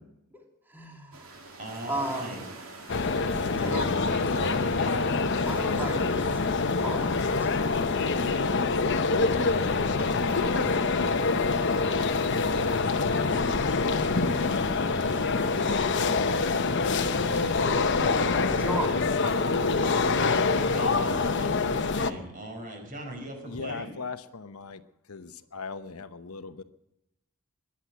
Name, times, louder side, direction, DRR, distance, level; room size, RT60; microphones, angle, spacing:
voice 1, 0.7-1.3 1.9-2.3 3.6-3.9 5.4-8.4 17.7-19.0, right 1 dB, 10° right, 1 dB, 2.8 m, -38 dB
sound 1, 1.1-10.9, right 2 dB, 65° right, 3.0 m, -48 dB
voice 2, 1.6-2.4 3.4-5.1 20.5-23.9, right 1 dB, 40° right, 2 dB, 5.2 m, -40 dB
sound 2, 2.9-22.1, left 4 dB, 55° left, 0.9 m, -25 dB
sound 3, 9.3-19.8, right 1 dB, 90° right, 4.9 m, -49 dB
voice 3, 23.5-24.8 25.1-26.6, left 4 dB, 85° left, 11 dB, 0.9 m, -39 dB
22.0 x 9.8 x 6.2 m, 0.85 s
head